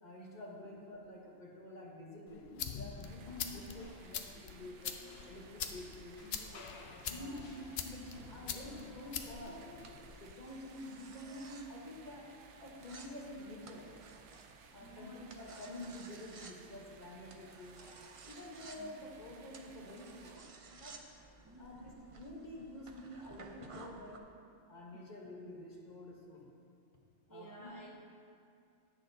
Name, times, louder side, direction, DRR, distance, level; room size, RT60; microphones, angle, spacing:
voice 1, 0.0-5.0 5.3-6.2 6.7-9.8 10.2-14.0 14.7-17.9 18.2-21.1 21.6-24.3 24.7-26.5 27.3-27.9, left 1 dB, 40° left, -2 dB, 1.1 m, -48 dB
sound 1, 2.3-10.3, left 7 dB, 60° left, 0.8 m, -45 dB
sound 2, 3.0-20.4, right 6 dB, 70° right, 0.9 m, -60 dB
voice 2, 6.2-7.8 14.8-15.2 18.8-18.9 21.4-21.7 24.9-25.0 27.3-27.9, right 1 dB, 20° right, -4 dB, 0.7 m, -54 dB
sound 3, 9.1-24.2, right 4 dB, 50° right, 0.4 m, -56 dB
17.5 x 6.4 x 2.7 m, 2.5 s
omnidirectional pair, 1.3 m